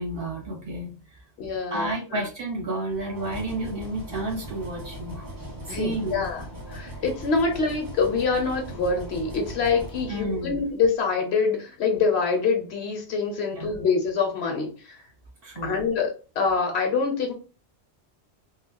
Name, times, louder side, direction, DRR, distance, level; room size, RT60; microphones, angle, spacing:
voice 1, 0.0-1.2 1.7-5.3 5.7-6.2 7.5-7.6 10.1-10.6 13.5-13.7 15.4-15.8, right 1 dB, 60° right, -1 dB, 1.6 m, -31 dB
voice 2, 1.4-2.2 5.7-6.4 6.7-15.0 15.6-17.3, left 4 dB, 80° left, 3 dB, 1.1 m, -25 dB
sound 1, 2.9-10.9, right 1 dB, 20° right, 0.8 m, -39 dB
3.9 x 2.3 x 2.2 m, 0.33 s
omnidirectional pair, 1.1 m